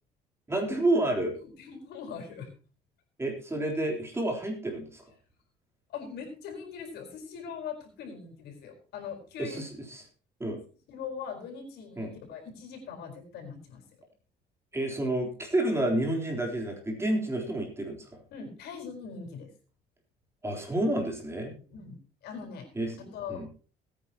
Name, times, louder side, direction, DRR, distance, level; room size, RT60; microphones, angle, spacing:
voice 1, 0.5-1.3 3.2-5.1 9.4-10.0 10.4-10.6 12.0-12.1 14.7-18.2 20.4-21.5 22.8-23.5, right 1 dB, 15° right, 1 dB, 3.7 m, -30 dB
voice 2, 1.4-2.5 5.9-9.6 10.9-13.8 18.3-19.5 21.5-22.7 23.1-23.6, left 6 dB, 75° left, 3 dB, 4.6 m, -41 dB
20.5 x 9.3 x 3.0 m, 0.38 s
cardioid pair, 110°, 17 cm